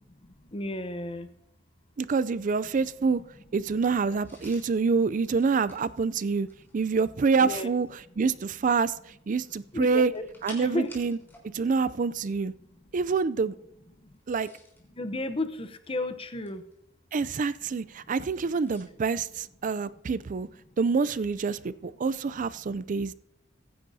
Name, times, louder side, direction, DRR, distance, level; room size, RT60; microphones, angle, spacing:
voice 1, 0.5-1.3 7.4-7.7 9.7-10.3 10.6-10.9 15.0-16.6, left 2 dB, 30° left, 10 dB, 0.8 m, -32 dB
voice 2, 2.0-3.2 3.5-6.5 6.7-8.9 9.3-10.1 10.4-11.2 11.5-12.5 12.9-13.5 14.3-14.5 17.1-20.5 20.8-23.1, right 4 dB, 40° right, 17 dB, 0.4 m, -26 dB
sound 1, 4.2-6.9 9.3-11.5 11.7-11.9 14.1-14.9 15.6-16.7 18.6-18.9, left 1 dB, 10° left, 3.9 m, -51 dB
22.5 x 10.0 x 2.7 m, 0.76 s
head